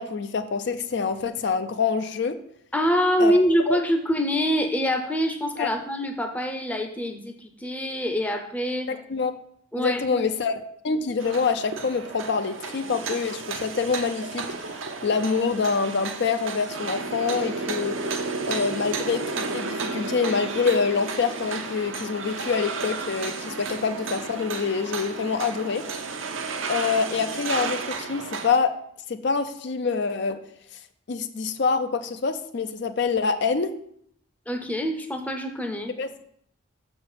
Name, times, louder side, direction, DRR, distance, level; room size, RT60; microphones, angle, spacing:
voice 1, 0.0-2.4 3.2-3.3 3.7-3.8 5.6-5.7 8.9-9.3 9.8-17.9 18.5-25.8 26.7-28.7 29.1-30.4 31.1-33.7 36.0-36.1, left 5 dB, 55° left, 9 dB, 0.4 m, -26 dB
voice 2, 2.7-8.9 9.7-10.2 34.5-35.9, equal, 5° left, 5 dB, 0.6 m, -25 dB
sound 1, 11.2-28.6, right 4 dB, 75° right, 0.8 m, -32 dB
6.4 x 4.4 x 5.9 m, 0.68 s
head